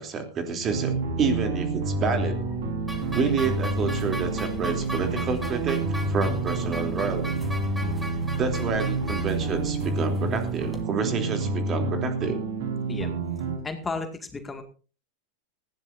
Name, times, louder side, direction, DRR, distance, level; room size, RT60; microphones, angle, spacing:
voice 1, 0.0-2.4 3.1-7.4 8.4-12.4, right 5 dB, 30° right, 5 dB, 3.3 m, -29 dB
sound 1, 0.6-13.6, right 3 dB, 60° right, 4.6 m, -29 dB
sound 2, 0.9-9.8, left 14 dB, 70° left, 2.0 m, -39 dB
sound 3, 2.9-10.8, right 1 dB, 5° right, 3.3 m, -38 dB
voice 2, 13.6-14.6, left 3 dB, 15° left, 6 dB, 2.1 m, -33 dB
19.0 x 15.5 x 2.7 m, 0.35 s
figure-of-eight pair, 90°, 0 cm